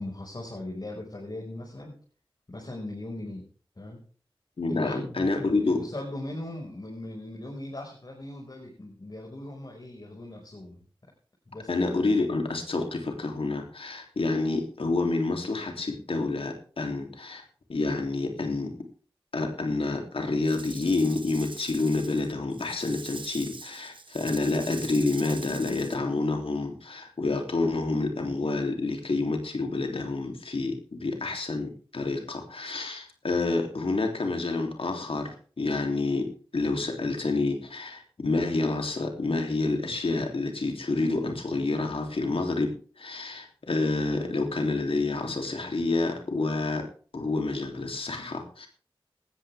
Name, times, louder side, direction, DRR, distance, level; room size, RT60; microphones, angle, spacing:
voice 1, 0.0-2.0 2.5-3.5 3.8-4.0 4.7-10.8 11.5-11.9, left 1 dB, 50° left, -1 dB, 5.4 m, -39 dB
voice 2, 4.6-5.8 11.7-17.4 17.7-18.8 19.3-48.7, left 3 dB, 80° left, 3 dB, 3.2 m, -28 dB
Rattle / Rattle (instrument), 20.4-26.0, right 3 dB, 65° right, 1.7 m, -44 dB
18.5 x 13.5 x 3.6 m, 0.40 s
cardioid pair, 45°, 9 cm